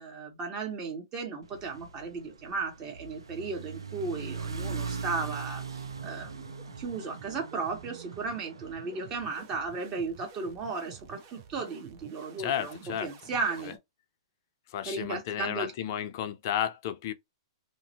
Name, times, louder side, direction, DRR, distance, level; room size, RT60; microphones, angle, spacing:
voice 1, 0.0-13.7 14.8-15.7, right 4 dB, 30° right, 1.2 m, -35 dB
sound 1, 1.4-9.8, right 5 dB, 85° right, 0.5 m, -40 dB
sound 2, 5.8-13.8, right 9 dB, 50° right, 0.7 m, -50 dB
voice 2, 12.4-13.1 13.6-13.7 14.7-17.1, left 10 dB, 50° left, 0.4 m, -32 dB
2.5 x 2.1 x 2.8 m
hypercardioid pair, 115°, 2 cm